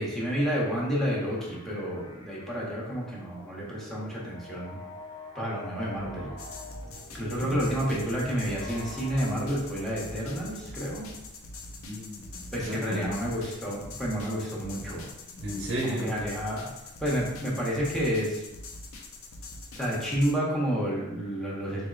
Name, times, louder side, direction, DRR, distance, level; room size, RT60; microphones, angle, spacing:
voice 1, 0.0-4.8 5.3-6.3 7.1-11.1 12.5-15.1 15.8-16.7 17.0-18.4 19.7-21.9, equal, ahead, -5 dB, 0.9 m, -30 dB
sound 1, 1.0-9.2, left 3 dB, 30° left, 0.7 m, -47 dB
sound 2, 5.9-11.3, equal, 20° right, 0.3 m, -47 dB
sound 3, 6.4-20.3, left 2 dB, 75° left, 0.6 m, -44 dB
voice 2, 11.8-13.1 15.3-16.1, right 1 dB, 60° right, -2 dB, 0.6 m, -34 dB
3.9 x 3.3 x 2.5 m, 0.97 s
head